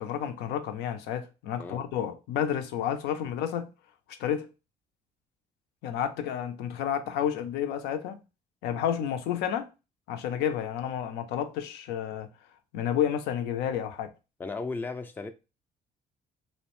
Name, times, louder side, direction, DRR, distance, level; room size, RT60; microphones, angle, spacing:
voice 1, 0.0-3.7 4.2-4.5 5.8-8.2 8.6-9.7 10.1-12.3 12.7-14.1, left 9 dB, 85° left, 0.4 m, -30 dB
voice 2, 1.6-1.9 14.4-15.3, left 3 dB, 10° left, 0.3 m, -35 dB
2.6 x 2.0 x 2.9 m
cardioid pair, 110°, 17 cm